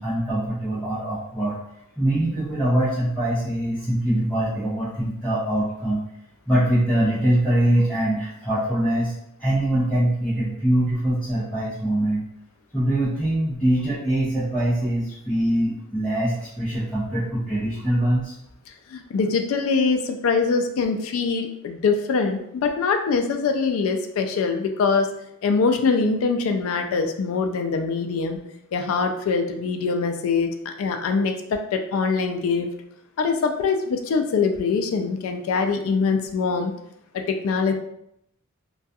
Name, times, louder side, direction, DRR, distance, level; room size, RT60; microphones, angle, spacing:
voice 1, 0.0-1.6 2.0-6.0 6.5-9.1 9.4-12.2 12.7-18.3, right 1 dB, 5° left, -12 dB, 0.6 m, -23 dB
voice 2, 18.9-25.1 25.4-28.4 28.7-32.7 33.2-36.7 37.1-37.7, left 4 dB, 70° left, 5 dB, 0.3 m, -23 dB
2.3 x 2.3 x 2.7 m, 0.76 s
head